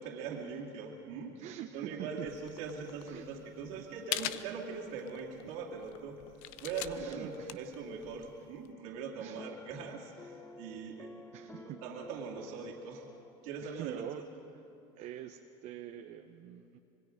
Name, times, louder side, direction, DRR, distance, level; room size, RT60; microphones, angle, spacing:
voice 1, 0.0-1.4 1.7-13.1 13.4-14.0 15.0-15.1, right 5 dB, 75° right, -1 dB, 2.5 m, -42 dB
voice 2, 1.4-2.3 3.1-3.3 3.6-3.9 5.4-5.5 7.0-7.6 9.2-9.4 11.3-11.8 13.6-14.3 15.0-16.8, right 12 dB, 60° right, 6 dB, 0.9 m, -45 dB
sound 1, 2.3-8.7, left 14 dB, 75° left, 0.8 m, -43 dB
sound 2, 9.4-13.8, left 3 dB, 20° left, 1.0 m, -52 dB
25.5 x 22.0 x 5.1 m, 3.0 s
supercardioid pair, 100°, 14 cm